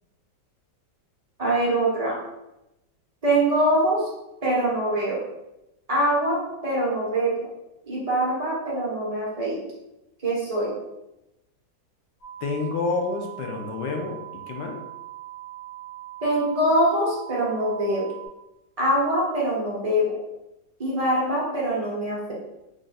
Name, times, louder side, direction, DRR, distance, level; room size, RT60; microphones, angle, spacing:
voice 1, 1.4-2.2 3.2-4.1 4.4-5.2 5.9-7.3 7.9-9.6 10.2-10.7 16.2-18.1 18.8-20.2 20.8-22.3, right 1 dB, 30° right, -5 dB, 0.7 m, -23 dB
sound 1, 12.2-18.3, right 14 dB, 50° left, 1.3 m, -41 dB
voice 2, 12.4-14.8, left 4 dB, 75° left, 2 dB, 1.2 m, -29 dB
3.3 x 2.5 x 4.0 m, 0.93 s
omnidirectional pair, 2.0 m